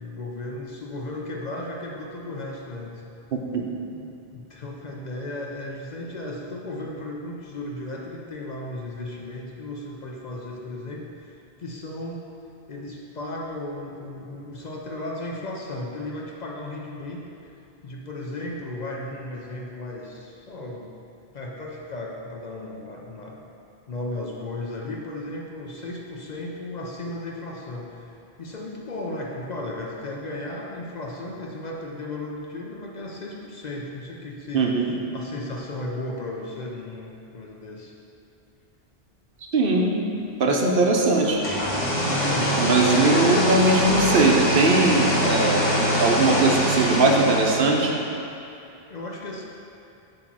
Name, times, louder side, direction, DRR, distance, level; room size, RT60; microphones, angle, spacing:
voice 1, 0.0-3.0 3.9-4.0 4.3-12.3 12.7-17.5 17.8-20.9 21.3-23.4 23.9-38.0 42.2-43.4 48.5-49.4, left 2 dB, 50° left, -1 dB, 0.6 m, -35 dB
voice 2, 3.3-3.6 34.5-34.9 39.5-39.9 40.4-41.4 42.6-45.7 46.0-47.9, right 2 dB, 60° right, 0 dB, 0.9 m, -20 dB
sound 1, 41.2-48.0, equal, 65° left, 1.5 m, -23 dB
7.5 x 3.0 x 6.0 m, 2.7 s
omnidirectional pair, 1.1 m